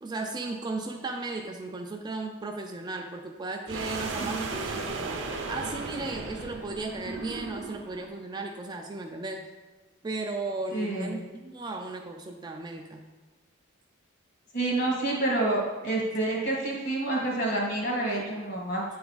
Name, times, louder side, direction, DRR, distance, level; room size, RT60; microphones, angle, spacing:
voice 1, 0.0-5.2 5.5-9.5 10.0-13.0, right 3 dB, 20° right, 3 dB, 0.3 m, -35 dB
sound 1, 3.7-8.0, right 3 dB, 60° right, 0.6 m, -35 dB
voice 2, 10.7-11.1 14.5-18.8, right 2 dB, 55° left, -2 dB, 1.6 m, -28 dB
8.5 x 3.4 x 3.9 m, 1.3 s
head